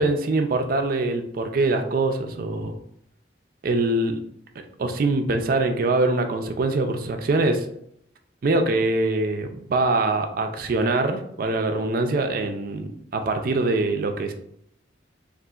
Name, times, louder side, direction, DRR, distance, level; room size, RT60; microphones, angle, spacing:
voice 1, 0.0-2.8 3.6-4.2 4.8-7.7 8.4-14.3, right 2 dB, 50° right, 6 dB, 0.3 m, -23 dB
3.7 x 2.4 x 2.3 m, 0.71 s
head